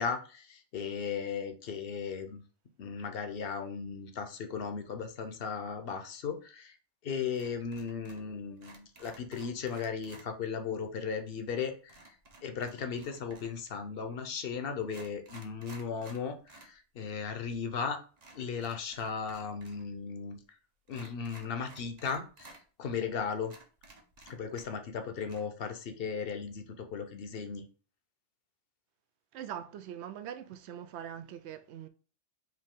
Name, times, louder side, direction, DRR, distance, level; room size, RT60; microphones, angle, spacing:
voice 1, 0.0-2.4 2.8-6.7 7.0-12.0 12.4-18.0 18.3-20.4 20.9-22.5 22.8-23.5 24.3-27.7, left 6 dB, 60° left, 0.9 m, -36 dB
sound 1, 7.3-8.3 8.6-10.3 11.9-13.6 14.3-14.4 14.8-16.7 17.0-17.1 18.2-19.8 20.1-20.2 20.9-22.6 23.1-23.2 23.4-24.9 25.2-25.4, right 2 dB, 40° right, 0.9 m, -54 dB
voice 2, 29.3-31.9, right 9 dB, 75° right, 0.8 m, -42 dB
4.8 x 2.7 x 3.7 m
omnidirectional pair, 1.2 m